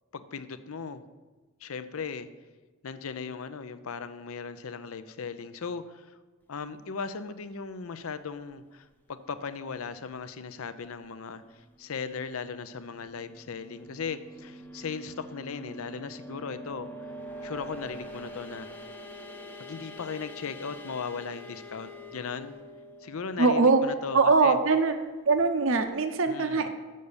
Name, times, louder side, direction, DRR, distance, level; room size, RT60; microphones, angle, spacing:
voice 1, 0.1-1.0 1.6-2.3 2.8-6.2 6.5-16.9 17.4-18.7 19.6-22.6 23.0-24.6 26.3-26.7, left 5 dB, 75° left, 11 dB, 0.6 m, -37 dB
sound 1, 13.0-25.5, equal, 10° left, 0.6 m, -45 dB
voice 2, 23.4-23.8 24.1-25.0 25.3-26.7, right 4 dB, 65° right, 8 dB, 0.6 m, -22 dB
6.7 x 6.5 x 7.0 m, 1.2 s
head